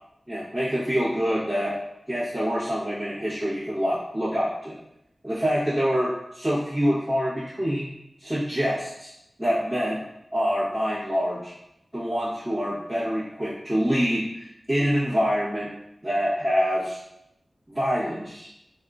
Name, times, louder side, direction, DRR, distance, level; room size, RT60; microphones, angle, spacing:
voice 1, 0.3-1.8 2.1-4.8 5.2-7.9 8.2-9.1 9.4-10.0 10.3-11.5 11.9-15.7 16.0-17.0 17.7-18.5, equal, 15° right, -13 dB, 1.0 m, -26 dB
3.5 x 2.4 x 2.4 m, 0.83 s
wide cardioid pair, 85°, 0 cm